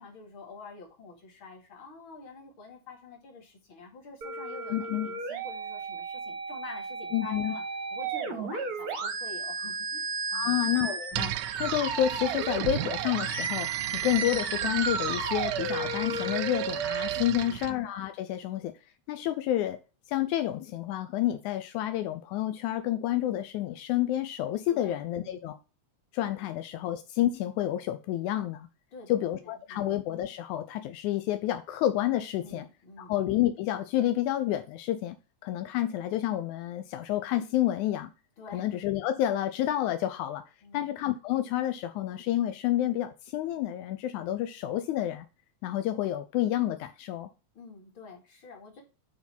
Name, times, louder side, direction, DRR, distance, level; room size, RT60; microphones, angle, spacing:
voice 1, 0.0-7.6 7.9-10.6 17.2-17.7 24.7-25.4 26.4-26.9 28.9-29.9 32.4-33.1 38.4-38.7 40.6-40.9 47.5-48.8, left 4 dB, 45° left, 0 dB, 2.9 m, -47 dB
sound 1, 4.2-17.2, right 4 dB, 50° right, 1.1 m, -33 dB
voice 2, 4.7-5.1 7.1-7.5 10.3-18.7 19.1-19.8 20.1-25.5 26.1-28.7 29.1-32.7 33.0-35.2 35.4-38.1 38.5-40.4 40.7-45.3 45.6-47.3, left 13 dB, 85° left, 9 dB, 2.0 m, -29 dB
sound 2, 11.1-17.8, right 14 dB, 80° right, 1.9 m, -35 dB
8.8 x 3.8 x 5.5 m, 0.31 s
omnidirectional pair, 3.4 m